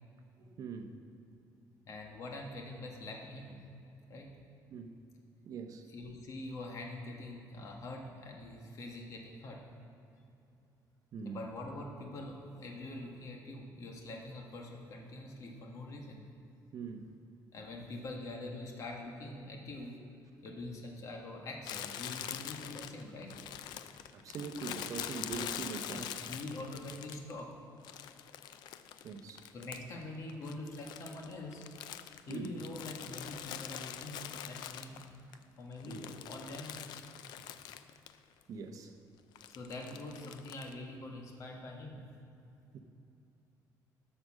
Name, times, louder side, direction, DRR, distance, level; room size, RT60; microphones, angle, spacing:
voice 1, 0.5-1.0 4.7-4.9 5.5-5.9 11.1-11.5 16.7-17.1 24.1-26.2 29.0-29.5 32.3-32.5 35.8-36.0 38.5-38.9 42.7-42.8, right 5 dB, 55° right, 6 dB, 0.8 m, -42 dB
voice 2, 1.9-3.6 4.1-4.3 5.9-9.6 11.2-16.3 17.5-19.9 20.4-23.3 25.9-27.5 29.5-31.7 32.3-35.3 35.6-37.0 39.5-42.0, left 2 dB, 50° left, 1 dB, 1.6 m, -44 dB
Crumpling crinkling, 21.6-27.4 27.8-30.0 30.3-35.3 35.7-38.2 38.4-38.5 39.4-40.7, left 10 dB, 85° left, 0.5 m, -44 dB
12.0 x 6.5 x 6.3 m, 2.7 s
cardioid pair, 155°, 7 cm